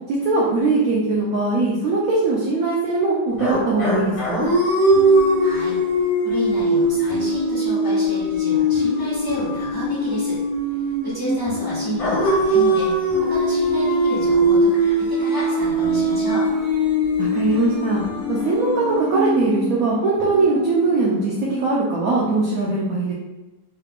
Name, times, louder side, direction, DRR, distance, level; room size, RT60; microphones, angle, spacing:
voice 1, 0.1-4.5 17.2-18.0 18.3-23.1, right 3 dB, 70° right, -4 dB, 0.8 m, -21 dB
Raw Cartoon Howls, 3.4-11.4 12.0-20.1, right 1 dB, 55° left, 1.4 m, -21 dB
sound 1, 4.9-22.4, left 3 dB, 75° left, 0.3 m, -32 dB
voice 2, 5.4-5.8 6.2-10.4 10.7-16.5, equal, 15° left, -11 dB, 1.1 m, -31 dB
3.2 x 2.4 x 3.4 m, 1.1 s
omnidirectional pair, 2.0 m